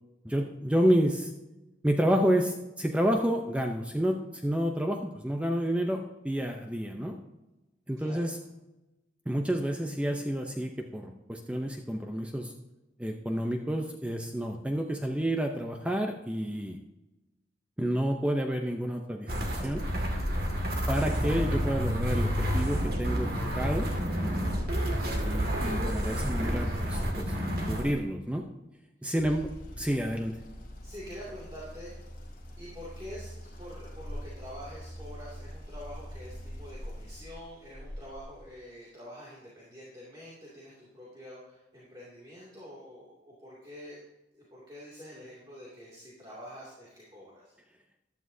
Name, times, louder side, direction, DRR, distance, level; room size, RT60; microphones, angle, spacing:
voice 1, 0.2-1.3 1.8-7.2 7.9-8.4 9.3-12.5 13.0-16.8 17.8-19.8 20.9-23.9 25.2-27.3 27.7-28.5 29.0-29.5 29.8-30.4, equal, 5° right, 3 dB, 0.6 m, -29 dB
sound 1, 19.3-27.9, equal, 55° right, 2.1 m, -29 dB
voice 2, 26.3-26.9 30.8-31.9 32.6-44.0 44.3-47.4, equal, 20° right, -7 dB, 2.5 m, -46 dB
sound 2, 29.2-38.5, equal, 45° left, 2.1 m, -44 dB
14.0 x 11.5 x 2.7 m, 1.0 s
head